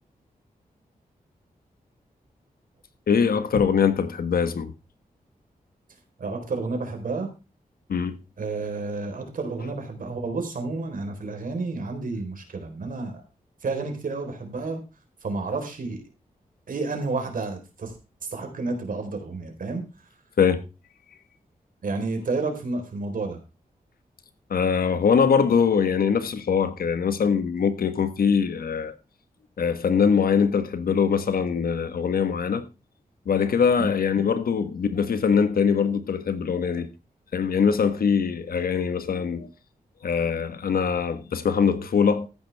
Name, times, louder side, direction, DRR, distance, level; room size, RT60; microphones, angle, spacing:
voice 1, 3.1-4.7 7.9-8.2 20.4-20.6 24.5-28.9 29.6-32.6 33.2-36.9 37.3-39.5 40.0-42.3, left 6 dB, 85° left, 1.5 m, -22 dB
voice 2, 6.2-7.3 8.4-13.2 13.6-14.8 15.2-16.0 16.7-18.0 18.3-19.9 21.8-23.4, right 3 dB, 70° right, 4.3 m, -30 dB
14.5 x 11.0 x 3.5 m
wide cardioid pair, 115°, 15 cm